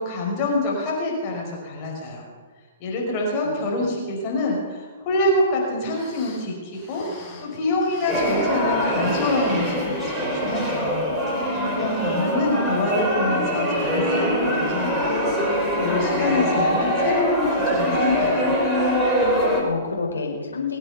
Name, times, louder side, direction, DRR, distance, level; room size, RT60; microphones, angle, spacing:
voice 1, 0.0-2.3 2.8-7.1 7.4-11.1 11.4-18.5, left 2 dB, 35° left, -1 dB, 5.3 m, -26 dB
voice 2, 3.4-3.9 19.3-20.8, left 4 dB, 80° left, 1 dB, 4.4 m, -30 dB
sound 1, 5.6-5.7 5.8-8.7 8.9-10.3 10.7-10.8 11.5-11.7 12.2-12.3, left 3 dB, 20° left, 5.8 m, -44 dB
sound 2, 8.1-19.6, equal, 5° right, 4.1 m, -23 dB
23.5 x 8.8 x 6.9 m, 1.5 s
figure-of-eight pair, 120°, 0 cm